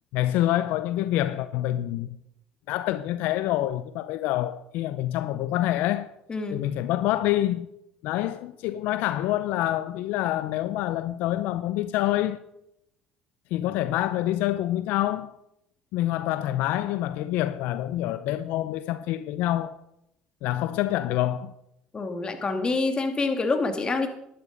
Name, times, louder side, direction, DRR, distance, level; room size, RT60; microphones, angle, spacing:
voice 1, 0.1-2.2 2.7-6.1 6.5-7.7 8.0-12.4 13.5-15.3 15.9-19.8 20.4-21.5, left 14 dB, 75° left, 0.6 m, -26 dB
voice 2, 6.3-6.6 21.9-24.1, left 3 dB, 30° left, 2.4 m, -26 dB
12.0 x 11.5 x 5.3 m
supercardioid pair, 80°, 3 cm